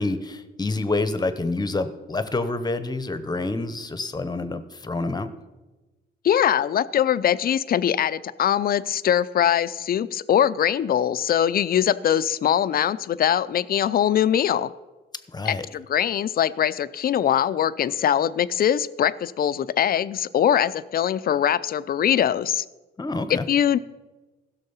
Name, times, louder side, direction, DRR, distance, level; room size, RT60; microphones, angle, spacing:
voice 1, 0.0-5.3 15.3-15.7 23.0-23.5, left 2 dB, 20° left, 12 dB, 0.9 m, -27 dB
voice 2, 6.2-14.7 15.5-22.6 23.3-23.8, left 10 dB, 50° left, 15 dB, 0.5 m, -22 dB
15.5 x 6.4 x 5.6 m, 1.2 s
cardioid pair, 90°, 20 cm